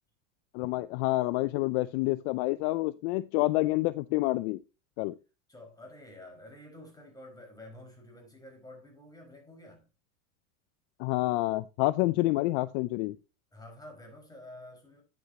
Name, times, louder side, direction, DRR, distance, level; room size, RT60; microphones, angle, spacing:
voice 1, 0.5-4.6 5.0-5.1 11.0-13.2, left 19 dB, 55° left, 0.5 m, -28 dB
voice 2, 5.5-9.9 13.5-15.0, left 1 dB, 10° left, 5.0 m, -49 dB
9.9 x 8.3 x 2.8 m
supercardioid pair, 110°, 40 cm